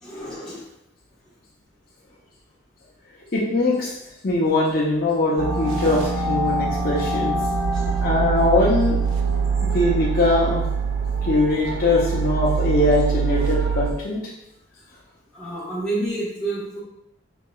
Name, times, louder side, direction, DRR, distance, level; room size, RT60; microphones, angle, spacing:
voice 1, 0.0-0.7 7.7-7.8 15.3-16.8, right 2 dB, 5° left, -9 dB, 1.1 m, -29 dB
voice 2, 3.3-3.9 4.2-7.4 8.0-9.0 9.6-10.6 11.2-14.2, left 2 dB, 45° left, -5 dB, 0.6 m, -21 dB
sound 1, 5.4-13.9, right 4 dB, 80° right, 0.5 m, -24 dB
5.2 x 2.8 x 2.3 m, 0.86 s
head